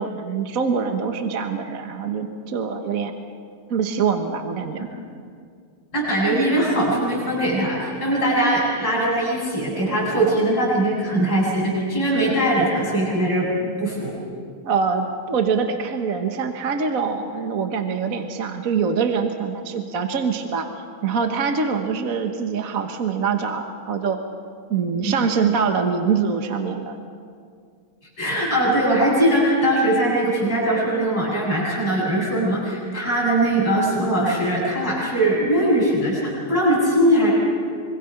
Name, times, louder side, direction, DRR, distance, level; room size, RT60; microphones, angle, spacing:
voice 1, 0.0-3.1 3.7-4.8 14.6-24.2 24.7-27.0, right 5 dB, 45° right, 5 dB, 1.4 m, -24 dB
voice 2, 5.9-14.1 25.0-25.1 28.2-37.3, right 1 dB, 45° left, -6 dB, 8.2 m, -21 dB
25.5 x 24.5 x 5.9 m, 2.2 s
omnidirectional pair, 2.3 m